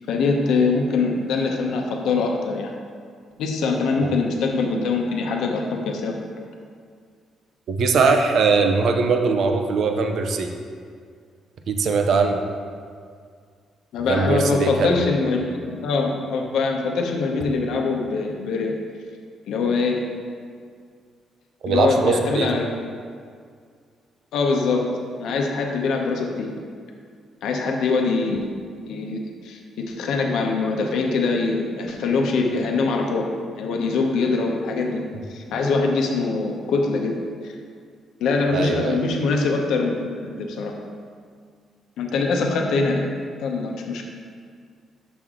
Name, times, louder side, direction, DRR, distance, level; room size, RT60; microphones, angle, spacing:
voice 1, 0.1-2.7 3.4-6.1 13.9-18.7 19.5-20.1 21.7-22.7 24.3-24.9 25.2-26.5 27.4-28.5 28.9-29.6 29.9-33.3 33.6-35.0 35.3-37.1 37.4-37.5 38.2-40.7 42.0-43.0 43.4-44.0, left 4 dB, 80° left, 1 dB, 0.8 m, -23 dB
voice 2, 7.7-10.5 11.7-12.4 14.1-15.2 21.6-22.5 38.5-39.0, right 4 dB, 65° right, 5 dB, 0.6 m, -21 dB
6.2 x 6.1 x 3.7 m, 2.1 s
cardioid pair, 90°, 0 cm